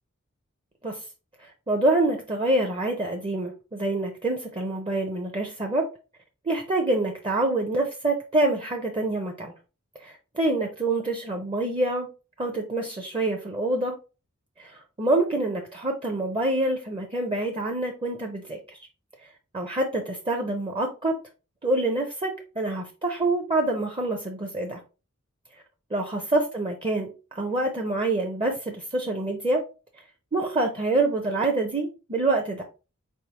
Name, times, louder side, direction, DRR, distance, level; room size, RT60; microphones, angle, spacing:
voice 1, 1.4-5.9 6.4-9.5 10.0-12.1 12.4-14.0 14.6-18.8 19.5-21.2 21.6-24.8 25.9-29.6 30.3-32.6, right 2 dB, 25° right, 0.6 m, -26 dB
4.5 x 3.5 x 2.9 m
head